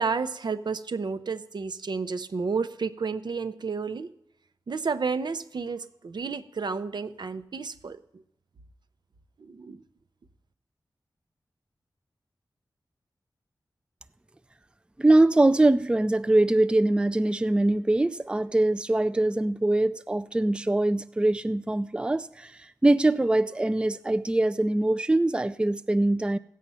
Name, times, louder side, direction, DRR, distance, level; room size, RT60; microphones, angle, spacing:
voice 1, 0.0-4.1 4.7-8.2 9.4-9.8, right 5 dB, 70° right, 11 dB, 0.7 m, -31 dB
voice 2, 15.0-26.4, right 2 dB, 15° right, 12 dB, 0.4 m, -23 dB
16.5 x 7.4 x 5.6 m, 0.78 s
wide cardioid pair, 65°, 8 cm